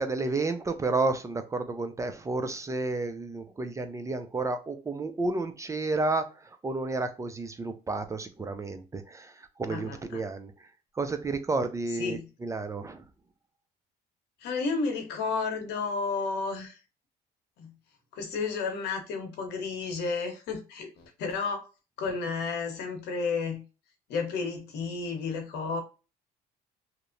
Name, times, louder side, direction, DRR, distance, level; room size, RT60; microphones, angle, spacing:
voice 1, 0.0-10.7 11.0-13.0, right 3 dB, 20° right, 0.3 m, -31 dB
voice 2, 9.7-10.2 12.0-12.3 14.4-16.8 17.6-17.7 18.1-21.7 22.0-23.6 24.1-25.8, left 4 dB, 80° left, 0.8 m, -32 dB
2.8 x 2.0 x 2.5 m
cardioid pair, 110°, 17 cm